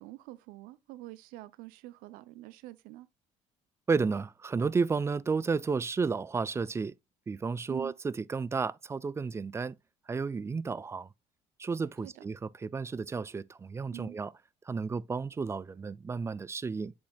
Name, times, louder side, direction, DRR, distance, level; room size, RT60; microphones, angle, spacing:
voice 1, 0.0-3.1 7.7-7.9 12.0-12.2 13.9-14.2, right 16 dB, 80° right, 0.5 m, -46 dB
voice 2, 3.9-6.9 7.3-9.8 10.1-11.1 11.6-14.3 14.7-16.9, right 4 dB, 20° right, 0.3 m, -32 dB
7.8 x 7.0 x 2.3 m
supercardioid pair, 90°, 14 cm